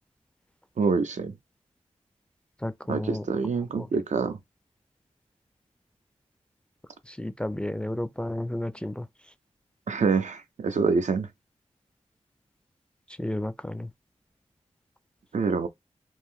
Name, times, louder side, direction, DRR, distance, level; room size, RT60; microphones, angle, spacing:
voice 1, 0.8-1.3 2.9-4.4 9.9-11.3 15.3-15.7, right 4 dB, 80° right, 0.5 m, -26 dB
voice 2, 2.6-3.2 3.8-3.9 7.1-9.0 13.2-13.9, left 1 dB, 10° left, 0.4 m, -32 dB
3.0 x 2.5 x 3.7 m
wide cardioid pair, 70°, 12 cm